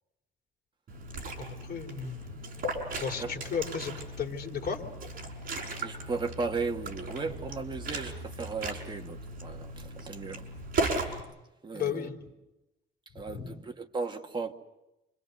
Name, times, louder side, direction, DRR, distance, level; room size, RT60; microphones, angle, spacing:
Liquid, 0.9-11.2, right 2 dB, 45° right, 5.9 m, -37 dB
voice 1, 1.4-2.4 2.9-4.9 11.7-12.2 13.1-13.6, left 7 dB, 50° left, 3.7 m, -35 dB
voice 2, 5.8-10.5 11.6-12.1 13.1-14.5, right 4 dB, 25° right, 2.0 m, -36 dB
28.5 x 26.0 x 6.8 m
cardioid pair, 140°, 20 cm